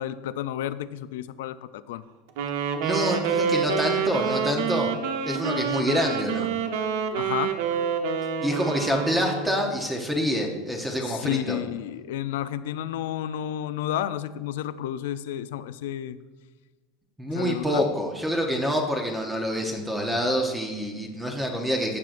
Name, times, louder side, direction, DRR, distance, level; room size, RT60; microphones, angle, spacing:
voice 1, 0.0-2.0 7.1-7.6 11.0-16.2 17.3-17.8, left 11 dB, 85° left, 14 dB, 0.4 m, -31 dB
Wind instrument woodwind instrument, 2.4-9.8, right 6 dB, 70° right, 0.9 m, -27 dB
voice 2, 2.8-4.9 5.2-6.5 8.4-11.6 17.2-22.0, equal, 5° right, 2 dB, 0.8 m, -26 dB
15.0 x 7.4 x 2.5 m, 1.3 s
supercardioid pair, 165°, 0 cm